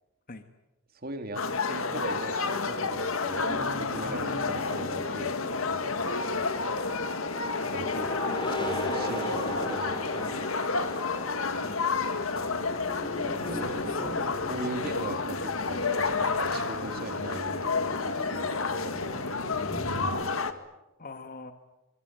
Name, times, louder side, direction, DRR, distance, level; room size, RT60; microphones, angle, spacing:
voice 1, 0.9-1.4 1.7-6.8 7.7-8.1 8.6-11.0 13.5-13.8 14.5-17.6 17.8-18.6 18.8-19.1, right 1 dB, 45° right, 7 dB, 3.3 m, -40 dB
sound 1, 1.4-20.5, left 4 dB, 75° left, 2.0 m, -30 dB
sound 2, 3.3-20.1, left 1 dB, 25° left, 6.1 m, -38 dB
voice 2, 11.5-12.0 13.5-14.4 14.9-15.1 21.0-21.5, left 3 dB, 45° left, 8 dB, 1.5 m, -45 dB
24.5 x 24.5 x 9.2 m, 0.98 s
head